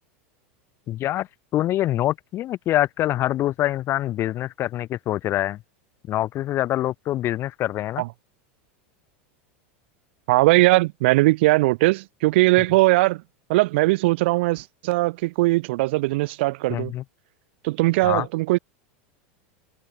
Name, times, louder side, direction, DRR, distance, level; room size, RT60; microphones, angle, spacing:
voice 1, 0.9-1.3 1.5-5.6 6.1-8.0 16.7-17.0 18.0-18.3, left 14 dB, 40° left, 1.2 m, -25 dB
voice 2, 10.3-13.2 13.5-16.9 17.6-18.6, right 21 dB, 70° right, 0.4 m, -20 dB
supercardioid pair, 120°, 7 cm